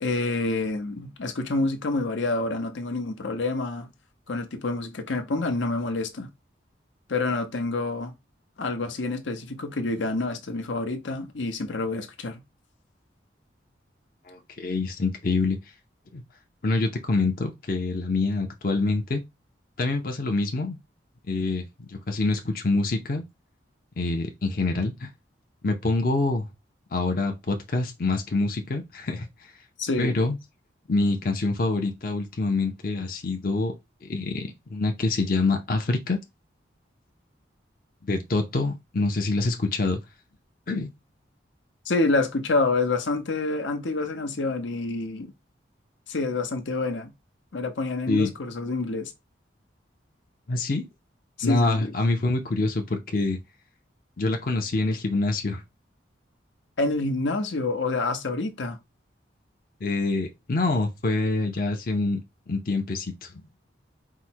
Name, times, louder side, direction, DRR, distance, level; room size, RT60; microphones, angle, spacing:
voice 1, 0.0-3.9 4.3-6.3 7.1-8.1 8.6-12.4 29.8-30.1 41.9-45.3 46.1-47.1 47.5-49.1 51.4-51.9 56.8-58.8, left 3 dB, 90° left, 0.8 m, -27 dB
voice 2, 14.3-15.6 16.1-16.2 16.6-19.2 19.8-20.8 21.3-23.2 24.0-25.1 25.6-26.5 26.9-29.5 30.0-30.4 30.9-33.7 34.0-36.2 38.0-40.0 40.7-40.9 48.1-48.3 50.5-50.9 51.4-53.4 54.2-55.6 59.8-62.2 62.5-63.3, left 3 dB, 50° left, 0.5 m, -26 dB
4.7 x 2.1 x 4.4 m
head